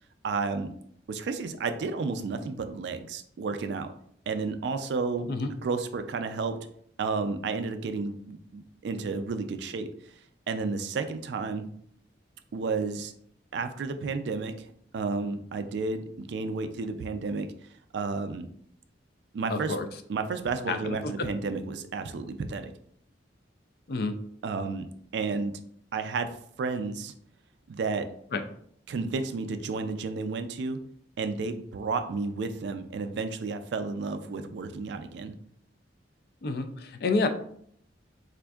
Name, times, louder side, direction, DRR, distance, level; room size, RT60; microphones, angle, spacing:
voice 1, 0.2-0.7 1.1-3.9 4.3-5.3 5.6-6.6 7.0-9.9 10.5-11.7 12.5-13.1 13.5-14.5 14.9-17.5 17.9-18.5 19.3-19.8 20.1-22.7 24.4-24.9 25.1-25.5 25.9-26.3 26.6-27.1 27.7-28.1 28.9-30.8 31.2-35.3, right 4 dB, 65° right, 9 dB, 0.3 m, -31 dB
voice 2, 19.5-19.9 20.7-21.3 23.9-24.2 28.3-28.4 36.4-37.3, left 3 dB, 55° left, 7 dB, 0.3 m, -29 dB
4.3 x 2.5 x 2.3 m, 0.65 s
head